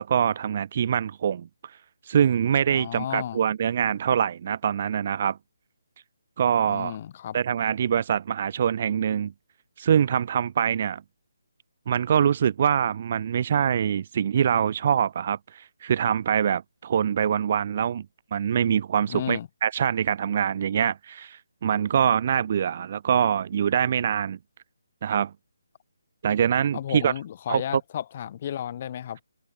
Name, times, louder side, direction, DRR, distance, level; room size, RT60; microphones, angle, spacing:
voice 1, 0.0-1.5 2.1-5.4 6.4-6.9 7.3-9.3 9.8-11.0 11.9-18.1 18.3-24.4 25.0-25.3 26.2-27.1 27.5-27.8, right 8 dB, 40° right, 0.8 m, -24 dB
voice 2, 2.7-3.4 6.7-7.4 19.1-19.5 26.7-29.2, left 10 dB, 35° left, 3.8 m, -33 dB
hypercardioid pair, 165°, 0 cm